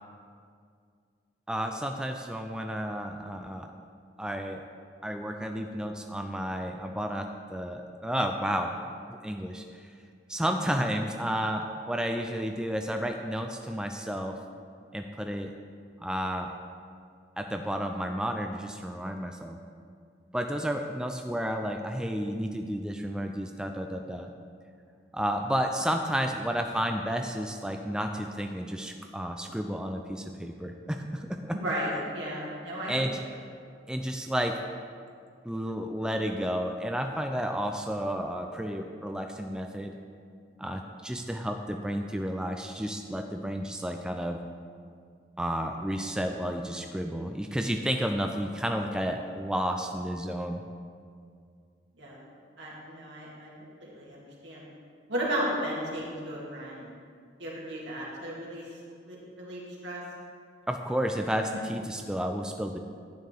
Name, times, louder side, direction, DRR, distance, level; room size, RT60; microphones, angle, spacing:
voice 1, 1.5-3.7 4.2-4.7 5.0-8.8 9.1-9.8 10.3-14.4 14.9-15.5 16.0-16.5 17.4-19.6 20.3-24.3 25.1-31.6 32.9-33.2 33.9-34.6 35.4-39.9 40.6-44.4 45.4-50.6 60.7-62.8, equal, 5° right, 4 dB, 0.4 m, -31 dB
voice 2, 31.5-33.4 52.0-52.2 52.6-53.5 53.8-54.7 55.1-56.9 57.4-58.6 59.0-60.0, equal, 85° right, -5 dB, 2.5 m, -34 dB
11.0 x 9.1 x 3.5 m, 2.2 s
head